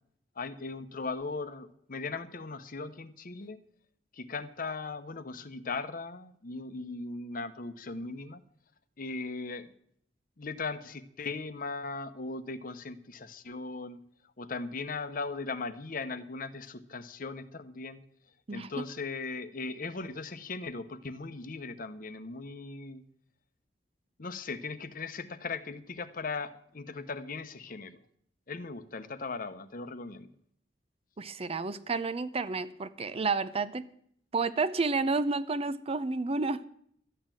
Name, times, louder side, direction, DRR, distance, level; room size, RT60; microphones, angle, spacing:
voice 1, 0.4-3.6 4.1-8.4 9.0-9.7 10.4-14.0 14.4-18.0 18.5-23.0 24.2-28.0 28.5-30.3, left 3 dB, 50° left, 12 dB, 0.9 m, -38 dB
voice 2, 18.5-18.9 31.2-33.9 34.3-36.7, right 4 dB, 35° right, 15 dB, 0.6 m, -30 dB
13.0 x 9.1 x 7.5 m, 0.66 s
head